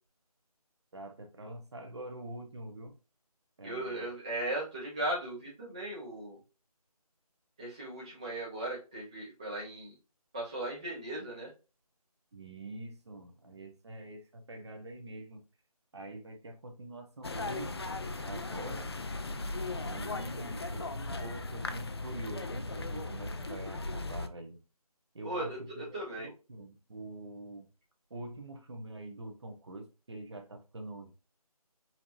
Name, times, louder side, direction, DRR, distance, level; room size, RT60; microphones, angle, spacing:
voice 1, 0.9-2.9 3.6-4.1 12.3-15.4 15.9-17.8 18.2-18.9 19.6-20.9 21.2-24.6 25.1-27.7 28.1-31.1, right 1 dB, 45° right, 1.0 m, -45 dB
voice 2, 3.6-6.4 7.6-9.9 10.3-11.5 25.2-26.3, right 1 dB, 10° right, 0.6 m, -37 dB
sound 1, 17.2-24.3, left 2 dB, 40° left, 0.4 m, -37 dB
5.7 x 2.8 x 2.6 m
figure-of-eight pair, 165°, 20 cm